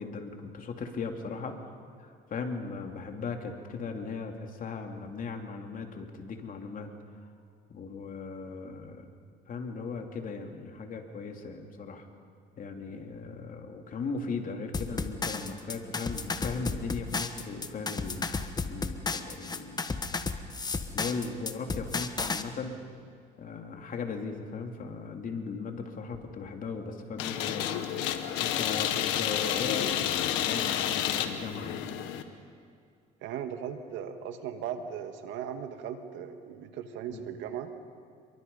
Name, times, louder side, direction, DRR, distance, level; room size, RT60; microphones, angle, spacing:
voice 1, 0.0-1.6 2.0-6.9 7.7-9.1 9.5-12.1 12.6-18.3 18.7-19.8 20.6-22.7 23.4-27.7 28.4-31.9 37.1-37.3, left 4 dB, 45° left, 3 dB, 3.0 m, -38 dB
sound 1, 14.7-22.4, left 4 dB, 20° left, 1.4 m, -33 dB
sound 2, 27.2-32.2, left 11 dB, 90° left, 1.5 m, -30 dB
voice 2, 33.2-37.7, right 8 dB, 80° right, 7 dB, 2.0 m, -38 dB
28.0 x 23.5 x 5.6 m, 2.3 s
cardioid pair, 100°, 19 cm